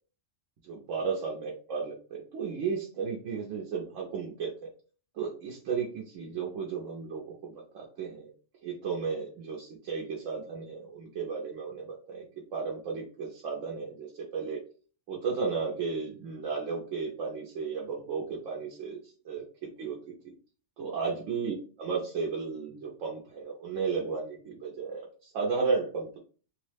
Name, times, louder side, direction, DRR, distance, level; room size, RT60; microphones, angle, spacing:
voice 1, 0.6-4.5 5.1-8.3 8.6-12.2 12.5-14.6 15.1-20.3 20.8-26.2, right 5 dB, 85° right, -2 dB, 1.0 m, -34 dB
3.1 x 2.0 x 3.2 m, 0.40 s
omnidirectional pair, 1.3 m